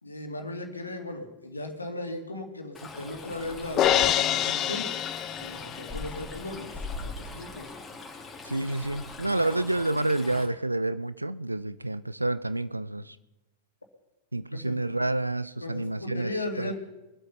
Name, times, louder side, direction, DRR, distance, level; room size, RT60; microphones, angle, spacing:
voice 1, 0.0-5.0 5.4-7.7 9.3-9.5 14.5-14.8 15.6-16.8, left 2 dB, 80° left, 2.2 m, -37 dB
Stream, 2.7-10.4, left 3 dB, 15° left, 3.0 m, -41 dB
Crash cymbal, 3.8-6.0, left 11 dB, 35° left, 0.7 m, -25 dB
voice 2, 8.4-13.2 14.3-16.8, right 2 dB, 85° right, 0.4 m, -29 dB
23.0 x 8.0 x 5.6 m
figure-of-eight pair, 90°, 0 cm